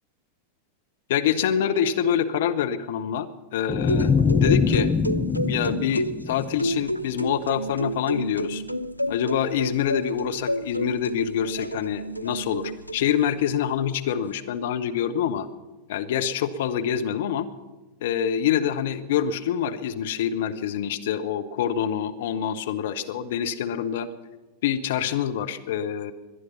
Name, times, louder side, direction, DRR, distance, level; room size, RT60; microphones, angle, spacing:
voice 1, 1.1-4.1 4.4-4.9 5.5-8.6 9.1-15.5 15.9-17.5 18.0-24.1 24.6-26.1, left 9 dB, 55° left, 9 dB, 0.9 m, -26 dB
sound 1, 3.7-6.9, left 5 dB, 15° left, 0.6 m, -23 dB
sound 2, 3.9-13.3, equal, 90° right, 0.4 m, -30 dB
21.5 x 11.5 x 5.8 m, 1.1 s
figure-of-eight pair, 90°, 0 cm